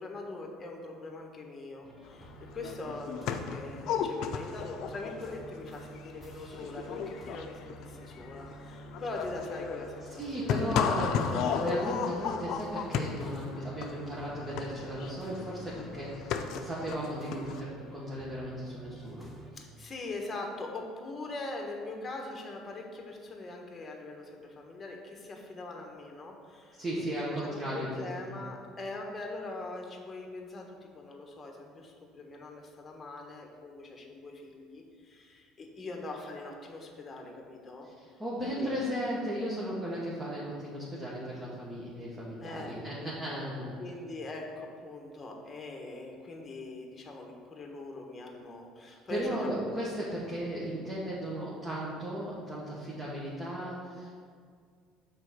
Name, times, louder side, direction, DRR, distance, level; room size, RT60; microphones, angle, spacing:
voice 1, 0.0-11.1 19.5-27.1 27.4-37.9 38.4-38.7 42.4-43.1 43.8-49.5, left 2 dB, 25° left, 1 dB, 1.3 m, -42 dB
sound 1, 1.8-19.5, right 2 dB, 5° right, 1.2 m, -51 dB
sound 2, 2.3-2.4 2.5-17.6, left 7 dB, 65° left, 0.5 m, -34 dB
voice 2, 10.1-19.3 26.8-27.9 28.1-28.4 38.2-43.7 48.8-54.1, equal, 25° right, -7 dB, 1.6 m, -36 dB
6.1 x 4.3 x 6.2 m, 2.1 s
supercardioid pair, 105°, 0 cm